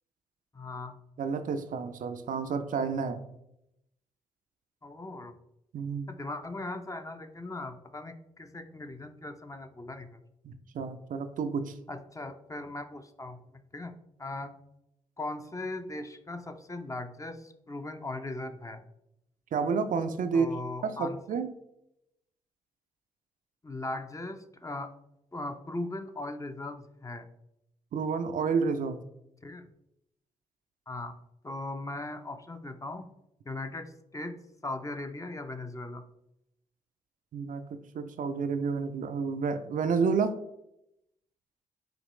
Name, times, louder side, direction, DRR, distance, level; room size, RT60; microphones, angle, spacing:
voice 1, 0.5-1.0 4.8-5.4 6.1-10.2 11.9-13.9 14.2-14.5 15.2-18.8 20.3-21.2 23.6-24.9 25.3-27.3 29.4-29.7 30.9-31.2 31.4-33.1 33.4-34.3 34.6-36.0, left 2 dB, 20° left, 7 dB, 0.6 m, -39 dB
voice 2, 1.2-3.2 5.7-6.2 10.4-11.8 19.5-20.5 20.8-21.5 27.9-29.0 37.3-40.4, right 5 dB, 60° right, 9 dB, 0.4 m, -30 dB
5.0 x 3.0 x 3.1 m, 0.82 s
hypercardioid pair, 40°, 16 cm